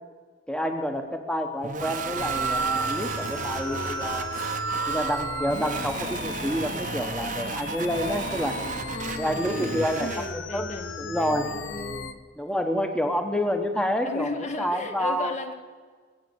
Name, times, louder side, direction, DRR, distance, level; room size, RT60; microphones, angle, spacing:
voice 1, 0.5-4.3 4.9-8.6 9.2-10.7 11.0-11.5 12.4-14.3 14.6-15.3, equal, 5° left, 6 dB, 1.1 m, -28 dB
sound 1, 1.6-10.3, right 4 dB, 45° right, 0.9 m, -34 dB
Wind instrument woodwind instrument, 1.8-5.8, right 5 dB, 70° right, 1.3 m, -32 dB
sound 2, 2.1-12.1, left 4 dB, 85° left, 0.8 m, -37 dB
voice 2, 8.9-12.1 14.0-15.5, left 2 dB, 40° left, 7 dB, 1.1 m, -36 dB
21.5 x 8.0 x 8.0 m, 1.5 s
head